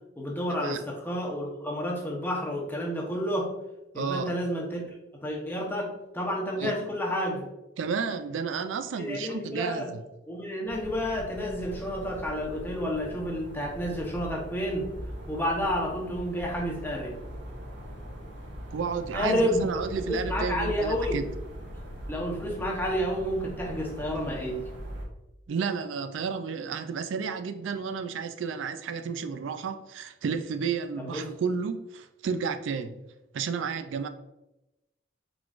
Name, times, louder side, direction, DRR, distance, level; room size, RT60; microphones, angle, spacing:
voice 1, 0.2-3.6 3.9-7.4 9.0-9.9 10.3-14.9 15.3-17.2 19.1-19.6 20.0-21.2 22.1-24.6 31.0-31.3, equal, 10° left, -2 dB, 0.9 m, -30 dB
voice 2, 3.9-4.3 6.6-6.7 7.8-10.0 18.7-21.2 25.5-33.0 33.3-34.1, right 6 dB, 85° right, 9 dB, 0.4 m, -32 dB
sound 1, 10.7-25.1, equal, 70° right, 1.1 m, -40 dB
4.6 x 3.9 x 2.4 m, 0.95 s
head